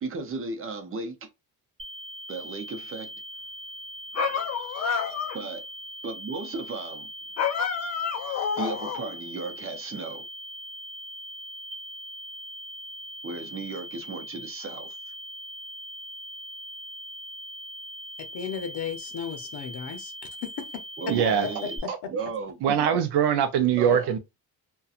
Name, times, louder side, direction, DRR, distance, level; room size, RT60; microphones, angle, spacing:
voice 1, 0.0-1.2 2.3-3.1 5.3-5.6 6.0-7.1 8.6-10.3 13.2-15.0 21.0-21.8 22.1-23.0 23.8-24.1, right 4 dB, 35° right, 0.6 m, -35 dB
sound 1, 1.8-21.8, equal, 15° right, 1.0 m, -41 dB
sound 2, 4.1-5.5 7.4-9.2, left 6 dB, 45° left, 0.5 m, -29 dB
voice 2, 18.2-20.1 20.4-21.1 22.0-22.1, left 7 dB, 75° left, 0.8 m, -35 dB
voice 3, 21.1-21.5 21.9-22.0 22.6-24.2, right 9 dB, 80° right, 0.5 m, -22 dB
2.7 x 2.3 x 2.4 m
cardioid pair, 135°, 40 cm